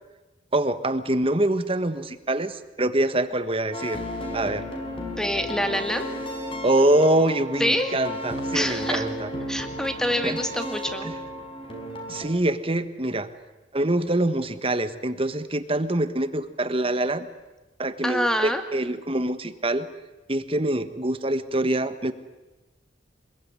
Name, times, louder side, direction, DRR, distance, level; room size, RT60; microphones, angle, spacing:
voice 1, 0.5-4.0 4.3-4.6 6.6-9.3 10.2-10.4 11.0-11.1 12.1-13.3 13.7-17.3 17.8-19.9 20.3-22.1, right 1 dB, 30° right, 11 dB, 1.4 m, -25 dB
sound 1, 3.7-12.2, equal, 30° left, 5.2 m, -33 dB
voice 2, 5.2-6.1 7.6-8.0 8.5-9.0 9.5-11.1 18.0-18.6, equal, 5° left, 7 dB, 2.2 m, -26 dB
26.0 x 22.0 x 9.7 m, 1.1 s
head